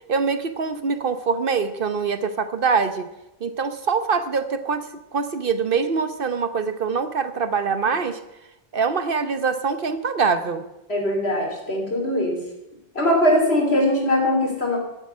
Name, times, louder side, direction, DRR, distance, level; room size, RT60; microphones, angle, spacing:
voice 1, 0.1-3.1 3.4-4.9 5.1-8.2 8.7-10.6, right 5 dB, 60° right, 11 dB, 1.1 m, -24 dB
voice 2, 10.9-12.4 12.9-14.8, left 1 dB, 75° left, 0 dB, 4.2 m, -21 dB
11.5 x 8.1 x 9.7 m, 0.91 s
omnidirectional pair, 1.1 m